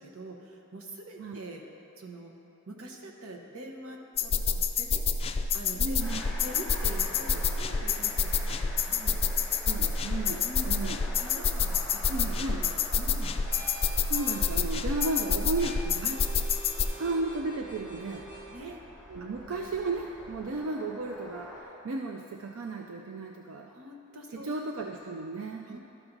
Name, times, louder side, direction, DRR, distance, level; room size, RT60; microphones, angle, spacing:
voice 1, 0.0-1.6 2.0-2.3 2.7-5.0 5.5-9.2 10.4-10.7 11.2-12.0 12.3-13.3 16.0-16.1 16.7-17.0 18.5-18.8 19.2-19.6 23.7-24.5 25.6-25.8, right 1 dB, 90° right, 1 dB, 1.0 m, -45 dB
sound 1, 4.2-16.9, left 5 dB, 30° left, 0.3 m, -28 dB
voice 2, 5.8-6.2 9.6-11.1 12.1-12.6 14.1-16.2 17.0-18.3 19.1-23.7 24.3-25.8, right 3 dB, 70° right, 2 dB, 0.4 m, -34 dB
sound 2, 6.0-21.6, left 1 dB, ahead, 1.7 m, -46 dB
sound 3, 11.8-20.6, right 1 dB, 40° right, 1.5 m, -47 dB
12.5 x 5.9 x 3.9 m, 2.9 s
head